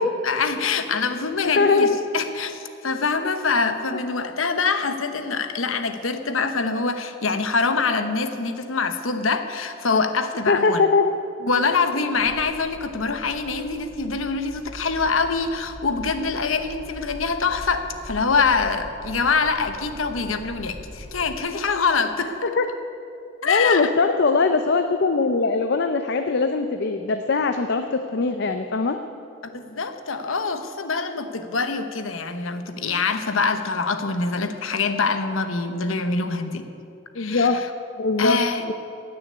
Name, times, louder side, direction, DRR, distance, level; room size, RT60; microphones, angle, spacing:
voice 1, 0.2-10.8 11.4-22.3 23.4-23.9 29.4-36.7 37.2-37.7 38.2-38.6, left 4 dB, 90° left, 8 dB, 1.0 m, -24 dB
voice 2, 1.4-2.0 10.5-11.1 22.4-22.7 23.4-29.0 37.2-37.6 38.0-38.7, left 4 dB, 55° left, 7 dB, 0.6 m, -21 dB
sound 1, 12.2-21.4, equal, 20° right, 1.7 m, -41 dB
16.0 x 6.9 x 9.6 m, 2.7 s
head